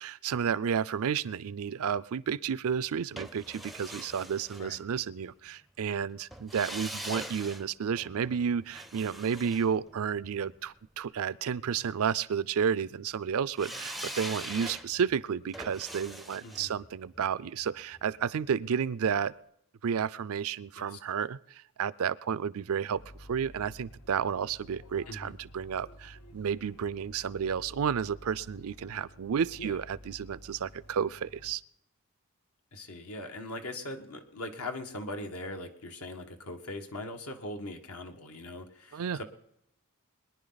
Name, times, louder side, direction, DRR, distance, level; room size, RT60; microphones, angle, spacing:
voice 1, 0.0-19.3 19.8-31.6 38.9-39.2, right 7 dB, 70° right, 18 dB, 0.4 m, -31 dB
sound 1, 3.2-5.3 6.3-10.6 13.6-18.6 18.9-19.0, right 1 dB, ahead, 0.5 m, -43 dB
voice 2, 16.4-16.7 20.8-21.0 25.1-25.3 29.6-29.8 32.7-39.2, left 1 dB, 70° left, 5 dB, 1.6 m, -40 dB
sound 2, 22.9-31.5, equal, 85° left, 1.1 m, -52 dB
22.0 x 10.5 x 4.0 m, 0.77 s
head